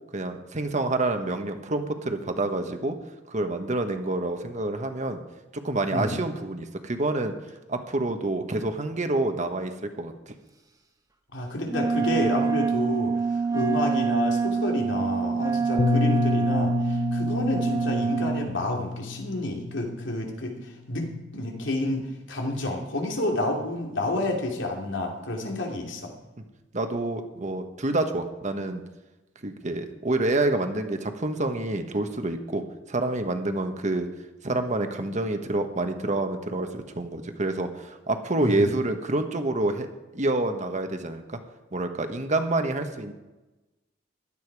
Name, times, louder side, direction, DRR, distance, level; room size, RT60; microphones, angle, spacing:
voice 1, 0.1-3.0 3.3-5.2 5.5-7.3 7.7-10.3 26.7-28.8 29.4-34.1 34.4-39.9 40.1-41.4 41.7-43.1, right 2 dB, 40° right, 6 dB, 1.3 m, -28 dB
voice 2, 5.9-6.2 11.3-26.1 38.4-38.8, left 1 dB, 90° left, 1 dB, 2.9 m, -30 dB
Wind instrument woodwind instrument, 11.7-18.5, right 5 dB, 20° right, 1.3 m, -26 dB
Bass guitar, 15.8-20.3 21.1-22.0, left 5 dB, 45° left, 0.4 m, -30 dB
16.0 x 12.0 x 4.8 m, 1.1 s
head